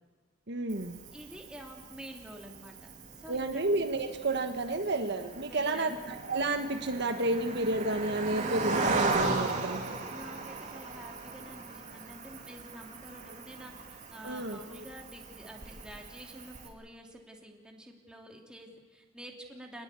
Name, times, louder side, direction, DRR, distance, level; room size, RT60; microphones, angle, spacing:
voice 1, 0.5-1.0 3.3-9.8 14.2-14.8, right 2 dB, 60° right, 6 dB, 1.5 m, -31 dB
Cricket, 0.7-16.7, right 3 dB, 35° right, 3.0 m, -37 dB
voice 2, 1.1-2.8 3.1-3.6 5.4-6.0 10.1-19.8, equal, 5° right, 0 dB, 2.9 m, -48 dB
26.5 x 20.0 x 8.4 m, 1.4 s
head